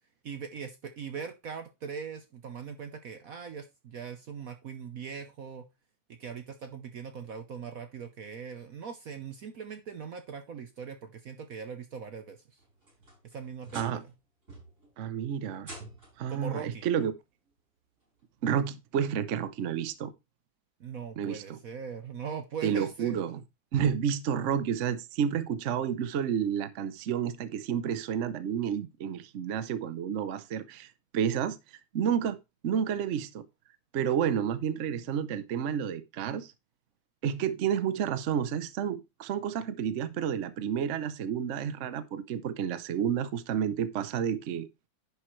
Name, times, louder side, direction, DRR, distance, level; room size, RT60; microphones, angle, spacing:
voice 1, 0.2-5.7 6.1-12.6 13.2-14.1 16.3-16.9 20.8-23.3, right 6 dB, 60° right, 1.0 m, -41 dB
sound 1, 12.6-14.2 14.5-14.9 15.6-16.3 17.5-17.6 18.2-18.3 19.9-20.0, right 1 dB, 35° right, 5.7 m, -47 dB
voice 2, 15.0-15.7 16.2-17.1 18.4-20.1 21.2-21.6 22.6-23.4 23.7-31.6 31.9-32.4 32.6-33.4 33.9-36.5 37.2-44.7, right 8 dB, 75° right, 0.6 m, -30 dB
10.5 x 7.0 x 3.1 m
omnidirectional pair, 2.3 m